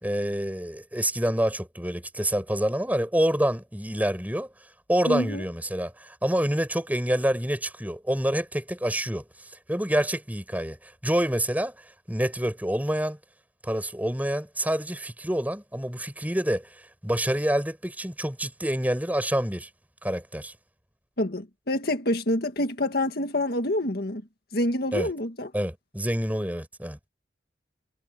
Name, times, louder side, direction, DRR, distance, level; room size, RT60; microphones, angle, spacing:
voice 1, 0.0-4.5 4.9-9.2 9.7-11.7 12.1-13.2 13.6-16.7 17.0-19.7 20.0-20.5 24.9-25.1 25.5-27.0, equal, 10° right, 5.1 m, -27 dB
voice 2, 5.1-5.4 21.2-24.2 24.5-25.5, left 1 dB, 60° left, 1.9 m, -27 dB
head